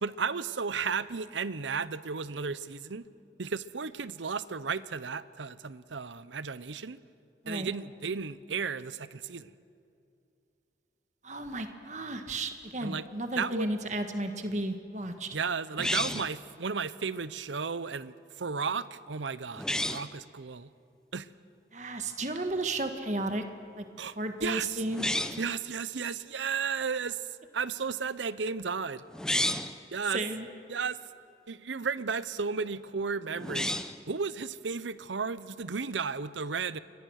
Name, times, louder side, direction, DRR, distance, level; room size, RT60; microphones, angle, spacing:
voice 1, 0.0-3.1 3.4-7.0 7.5-9.5 12.8-13.1 13.4-13.7 15.3-20.7 21.1-21.3 24.0-24.8 25.4-27.3 27.5-29.0 29.9-30.2 30.7-31.0 31.5-36.8, right 5 dB, 90° right, 16 dB, 0.8 m, -34 dB
voice 2, 11.2-15.4 21.7-23.4 23.8-23.9 24.2-25.4 30.1-30.5, right 2 dB, 40° right, 6 dB, 1.7 m, -33 dB
sound 1, 15.8-16.4 19.5-20.1 24.9-25.5 29.1-29.8 33.4-34.0, left 1 dB, 5° left, 0.6 m, -31 dB
29.0 x 23.0 x 6.5 m, 2.6 s
head